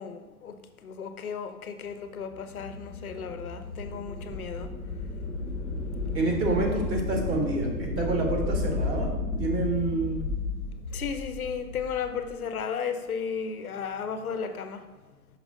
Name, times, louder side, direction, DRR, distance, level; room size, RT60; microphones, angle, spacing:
voice 1, 0.0-6.2 10.9-14.9, left 6 dB, 60° left, 0.8 m, -35 dB
sound 1, 2.2-12.4, left 2 dB, 20° right, 0.5 m, -33 dB
voice 2, 6.1-9.1 9.4-10.2, right 2 dB, 80° right, 2.0 m, -28 dB
6.0 x 5.1 x 3.7 m
hypercardioid pair, 170°, 49 cm